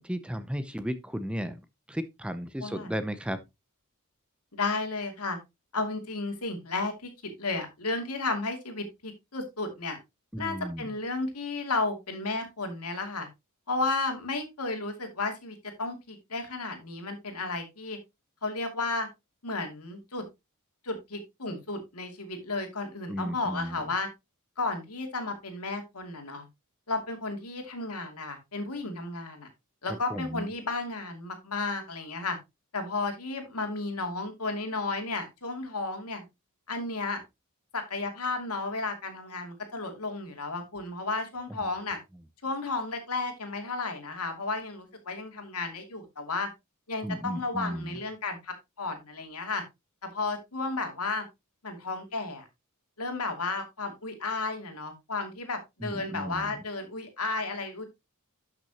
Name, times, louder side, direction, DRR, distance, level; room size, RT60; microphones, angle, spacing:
voice 1, 0.0-1.6 1.9-3.4 10.3-10.9 23.1-23.9 30.1-30.5 41.5-41.7 47.0-48.0 55.8-56.6, equal, 5° right, 0.6 m, -34 dB
voice 2, 2.6-2.9 4.5-5.4 5.7-7.1 7.4-10.0 10.4-13.3 13.7-18.0 18.4-19.1 19.4-20.2 20.8-24.1 24.6-26.5 26.9-29.5 29.8-32.4 32.7-36.2 36.7-37.2 37.7-42.0 42.4-46.5 46.9-49.6 50.0-51.3 51.6-52.4 53.0-57.8, left 3 dB, 80° left, 2.6 m, -33 dB
12.0 x 6.0 x 2.9 m
head